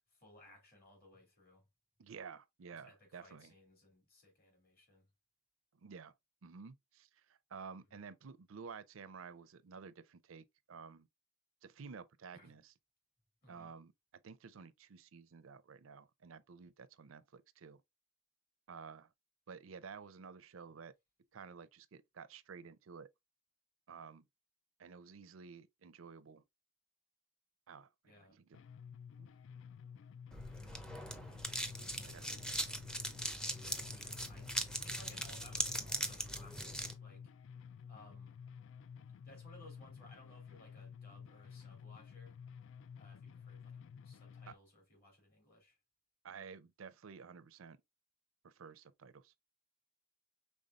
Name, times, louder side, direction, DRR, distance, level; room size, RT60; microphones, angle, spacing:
voice 1, 0.0-1.7 2.7-5.1 7.9-8.0 12.3-12.6 13.4-13.8 28.0-28.4 33.6-34.5 34.8-37.3 37.9-38.4 39.1-42.4 43.0-45.8, left 1 dB, 45° left, 2.8 m, -61 dB
voice 2, 2.0-3.5 5.7-6.1 6.4-11.1 11.6-12.7 13.5-13.9 14.2-17.8 18.7-19.1 19.5-20.9 21.3-23.1 23.9-24.3 24.8-26.4 27.7-28.6 29.2-29.3 30.9-32.8 44.5-44.6 46.2-47.8 48.4-49.3, right 5 dB, 85° right, 0.5 m, -52 dB
sound 1, 28.5-44.5, left 7 dB, 65° left, 0.3 m, -52 dB
sound 2, 30.3-36.9, equal, 5° left, 0.5 m, -40 dB
5.3 x 3.5 x 2.4 m
head